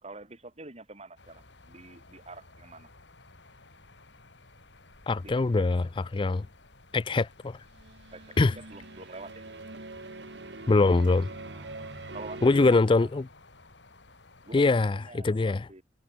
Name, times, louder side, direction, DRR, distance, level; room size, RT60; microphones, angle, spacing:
voice 1, 0.0-2.9 5.2-5.7 8.1-9.4 11.5-13.2 14.4-15.8, right 2 dB, 35° right, 2.9 m, -47 dB
sound 1, 1.2-14.9, left 2 dB, 85° left, 4.0 m, -55 dB
voice 2, 5.1-6.5 6.9-7.6 8.4-8.5 10.7-11.3 12.4-13.2 14.5-15.0 15.2-15.7, left 3 dB, 30° left, 0.4 m, -23 dB
sound 2, 7.7-12.8, right 2 dB, 75° right, 1.9 m, -43 dB
head